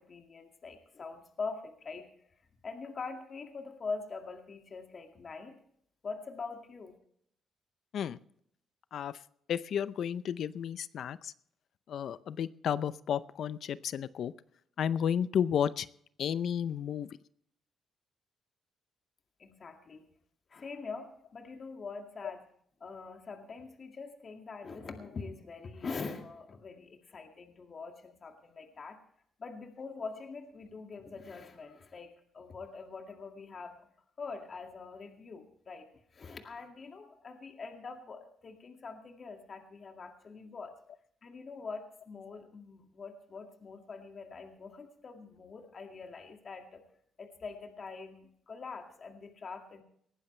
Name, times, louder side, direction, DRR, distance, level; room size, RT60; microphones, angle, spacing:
voice 1, 0.0-2.1 2.6-5.6 6.0-7.0 19.4-20.1 20.5-22.4 22.8-29.0 29.4-33.9 34.2-35.8 36.1-40.8 41.2-46.8 47.2-49.8, left 4 dB, 45° left, 4 dB, 2.1 m, -44 dB
voice 2, 9.5-11.3 11.9-14.3 14.8-15.9 16.2-17.1, left 8 dB, 65° left, 16 dB, 0.6 m, -32 dB
19.5 x 15.0 x 3.3 m, 0.66 s
cardioid pair, 90°, 0 cm